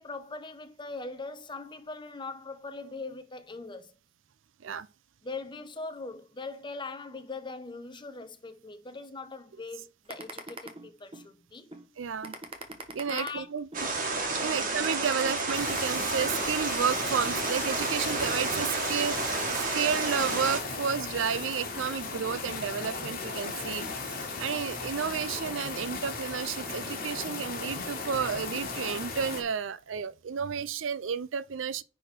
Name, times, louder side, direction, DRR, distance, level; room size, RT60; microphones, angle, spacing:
voice 1, 0.0-3.9 5.2-11.7 13.1-13.5 14.3-14.7, left 3 dB, 25° left, 0.9 m, -41 dB
sound 1, 10.1-11.3 11.7-11.9 12.2-13.9 14.3-14.5 14.8-16.5 16.9-17.1 17.4-18.5, right 3 dB, 30° right, 1.2 m, -41 dB
voice 2, 12.0-12.4 12.9-13.9 14.4-31.8, right 7 dB, 70° right, 0.5 m, -32 dB
sound 2, 13.7-20.6, right 3 dB, 45° right, 2.1 m, -31 dB
sound 3, 15.5-29.4, left 3 dB, 50° left, 2.4 m, -36 dB
9.9 x 4.3 x 4.4 m
head